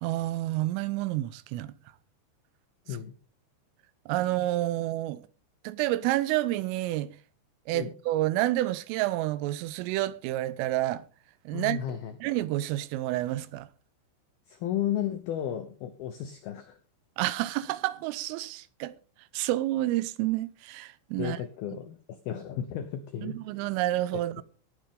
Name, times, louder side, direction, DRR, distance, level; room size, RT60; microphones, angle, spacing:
voice 1, 0.0-1.7 4.1-5.2 5.6-7.2 7.7-11.0 11.5-13.7 17.2-19.0 19.3-21.4 23.2-24.4, right 15 dB, 85° right, 3.3 m, -29 dB
voice 2, 11.5-12.2 14.5-16.8 21.2-23.4, left 10 dB, 85° left, 2.1 m, -33 dB
18.0 x 8.9 x 3.7 m
omnidirectional pair, 5.8 m